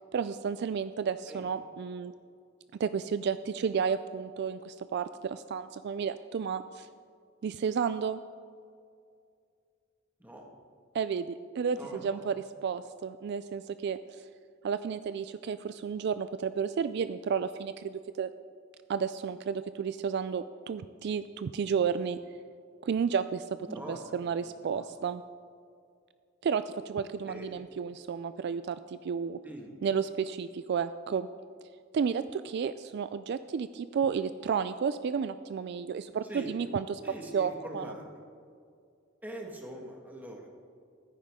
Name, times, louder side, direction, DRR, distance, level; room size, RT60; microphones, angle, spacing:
voice 1, 0.1-2.1 2.8-6.9 7.4-8.2 10.9-12.3 12.6-14.2 14.6-18.3 18.9-22.2 22.8-25.2 26.4-29.4 29.8-31.3 31.9-37.0 37.3-37.8, right 6 dB, 60° right, 12 dB, 0.3 m, -32 dB
voice 2, 11.7-12.2 23.7-24.0 24.4-24.9 27.3-27.4 29.4-29.7 36.2-36.5 37.0-38.0 39.2-40.5, right 1 dB, 10° right, 0 dB, 1.7 m, -43 dB
14.5 x 9.7 x 3.6 m, 2.3 s
head